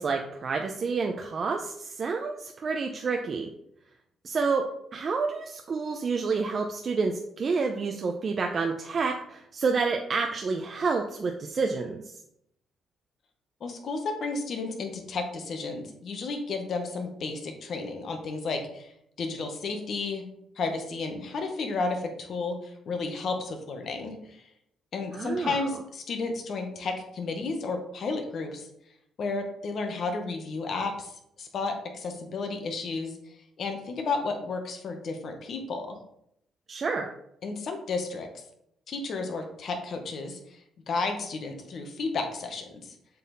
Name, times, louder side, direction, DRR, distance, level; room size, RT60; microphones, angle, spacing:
voice 1, 0.0-3.5 4.2-4.7 4.9-12.1 25.1-25.6 36.7-37.1, right 4 dB, 45° right, 3 dB, 0.7 m, -29 dB
voice 2, 13.6-18.9 19.2-20.2 20.5-24.5 24.9-28.7 29.2-33.2 33.6-36.0 37.4-38.4 38.9-42.9, left 3 dB, 60° left, 4 dB, 1.4 m, -32 dB
7.4 x 4.1 x 4.1 m, 0.75 s
cardioid pair, 90°, 0 cm